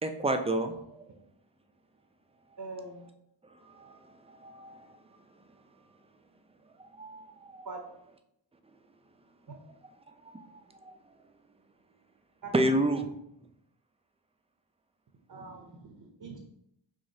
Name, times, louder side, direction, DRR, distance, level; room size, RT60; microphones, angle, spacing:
voice 1, 0.0-1.1 3.6-5.0 6.8-7.7 10.1-11.0 12.5-13.1, right 1 dB, 15° right, 6 dB, 0.4 m, -31 dB
voice 2, 2.6-3.1 7.6-7.8 12.4-12.5 15.3-16.4, right 3 dB, 45° right, 2 dB, 0.7 m, -43 dB
6.2 x 2.4 x 2.8 m, 0.79 s
cardioid pair, 45°, 49 cm